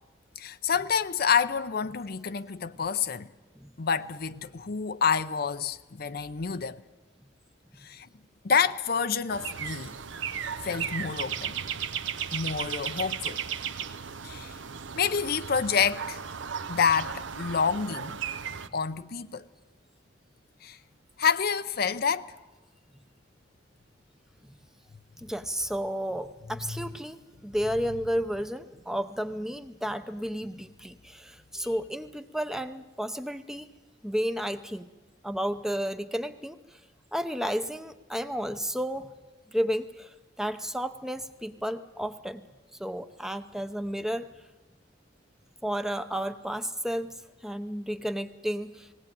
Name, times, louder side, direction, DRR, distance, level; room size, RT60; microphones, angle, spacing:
voice 1, 0.4-3.3 3.8-6.8 7.8-8.1 8.4-9.9 10.6-11.6 12.3-13.4 14.2-14.6 14.9-16.2 16.7-18.2 18.7-19.5 20.6-20.8 21.2-22.3, left 6 dB, 55° left, 0.6 m, -28 dB
sound 1, 9.3-18.7, right 7 dB, 85° right, 0.9 m, -35 dB
voice 2, 25.2-33.7 34.0-34.9 35.2-36.6 37.1-39.1 39.5-42.5 42.8-44.3 45.6-47.1 47.4-48.9, equal, 5° right, 0.7 m, -32 dB
19.5 x 17.5 x 9.0 m
head